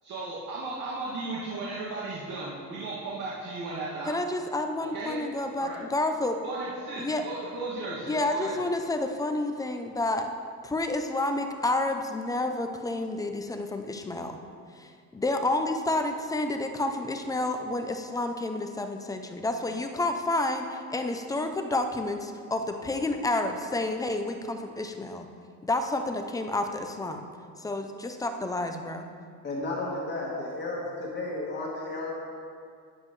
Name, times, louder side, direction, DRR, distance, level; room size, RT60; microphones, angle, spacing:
voice 1, 0.0-4.2 4.8-5.2 5.6-5.8 6.4-8.5, right 3 dB, 65° right, -8 dB, 2.1 m, -35 dB
voice 2, 4.1-6.4 7.0-7.2 8.1-10.3 10.6-14.4 14.8-25.3 25.6-27.2 27.6-29.1, left 2 dB, 10° left, 5 dB, 0.4 m, -30 dB
voice 3, 29.4-32.1, left 2 dB, 30° left, -5 dB, 1.4 m, -33 dB
13.0 x 9.6 x 3.1 m, 2.2 s
cardioid pair, 175°, 35 cm